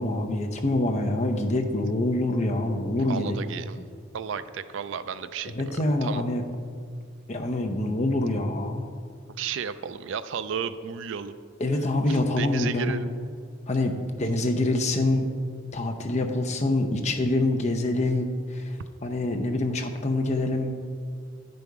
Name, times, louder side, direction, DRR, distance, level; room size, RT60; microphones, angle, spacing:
voice 1, 0.0-3.4 5.5-6.4 7.3-8.9 11.6-13.1 13.7-15.3 15.7-18.8 19.0-20.8, left 2 dB, 35° left, 4 dB, 0.7 m, -26 dB
voice 2, 3.0-3.8 4.1-6.2 9.4-11.4 12.1-13.1, right 7 dB, 65° right, 13 dB, 0.3 m, -33 dB
9.8 x 5.3 x 4.7 m, 2.1 s
head